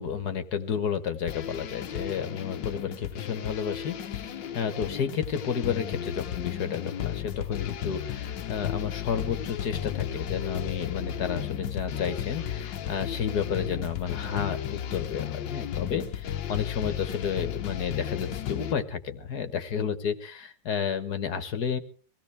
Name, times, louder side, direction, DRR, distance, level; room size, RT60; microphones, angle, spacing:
voice 1, 0.0-21.8, left 7 dB, 60° left, 10 dB, 1.8 m, -31 dB
sound 1, 1.3-18.7, left 10 dB, 80° left, 1.7 m, -34 dB
23.0 x 16.5 x 3.4 m, 0.42 s
omnidirectional pair, 2.0 m